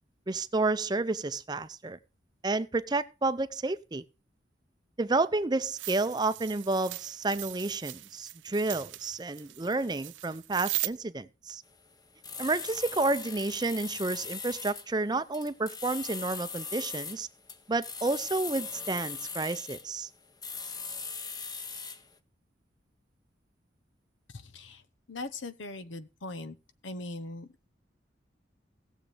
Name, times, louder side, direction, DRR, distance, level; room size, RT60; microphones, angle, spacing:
voice 1, 0.3-2.0 2.4-4.0 5.0-11.6 12.4-17.3 17.7-20.1, right 3 dB, 20° right, 0.5 m, -30 dB
sound 1, 5.8-10.9, right 17 dB, 90° right, 0.7 m, -39 dB
sound 2, 11.7-22.1, left 5 dB, 20° left, 0.8 m, -40 dB
voice 2, 25.1-26.6 26.8-27.7, left 2 dB, 90° left, 0.9 m, -40 dB
17.5 x 7.3 x 3.2 m
head